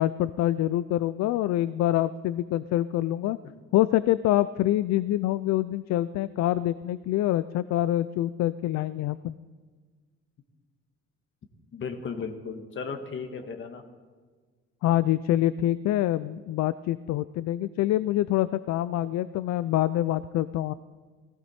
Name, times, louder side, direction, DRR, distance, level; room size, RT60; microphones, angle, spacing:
voice 1, 0.0-3.4 3.7-9.4 14.8-20.7, left 13 dB, 65° left, 15 dB, 0.4 m, -25 dB
voice 2, 11.7-13.8, left 5 dB, 40° left, 5 dB, 1.4 m, -35 dB
18.5 x 16.0 x 4.3 m, 1.5 s
cardioid pair, 170°, 29 cm